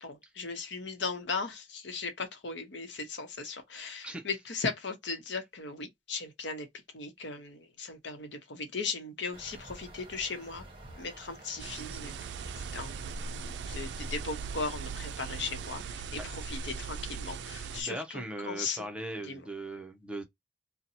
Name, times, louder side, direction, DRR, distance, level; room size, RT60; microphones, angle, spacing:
voice 1, 0.0-6.7 6.9-10.6 11.0-12.1 12.7-18.8 19.2-19.4, left 4 dB, 80° left, 0.9 m, -37 dB
sound 1, 9.3-15.7, right 2 dB, 30° right, 1.0 m, -50 dB
sound 2, 11.6-17.8, right 5 dB, 70° right, 0.3 m, -39 dB
voice 2, 17.8-20.2, right 1 dB, 5° right, 0.6 m, -39 dB
2.7 x 2.2 x 4.0 m
head